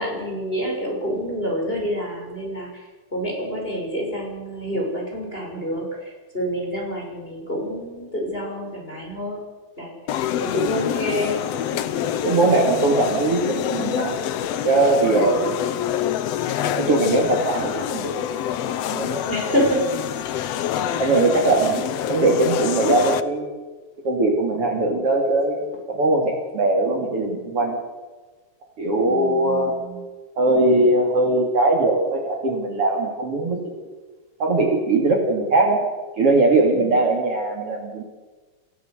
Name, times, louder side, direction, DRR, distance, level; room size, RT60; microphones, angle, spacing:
voice 1, 0.0-2.7 3.1-9.5 9.8-9.9 10.4-11.4 15.1-15.5 19.3-19.8 20.9-21.1 29.0-30.0 36.7-36.9, equal, 15° left, -2 dB, 6.5 m, -27 dB
sound 1, 10.1-23.2, left 10 dB, 65° left, 1.8 m, -26 dB
voice 2, 12.2-14.2 14.6-15.5 16.8-18.4 18.9-19.2 19.5-19.6 21.0-21.8 22.1-23.5 24.0-25.6 25.9-27.8 28.8-29.7 30.4-33.7 34.4-35.8 36.2-38.0, right 2 dB, 50° right, 1 dB, 3.5 m, -20 dB
28.0 x 16.0 x 8.2 m, 1.3 s
omnidirectional pair, 3.4 m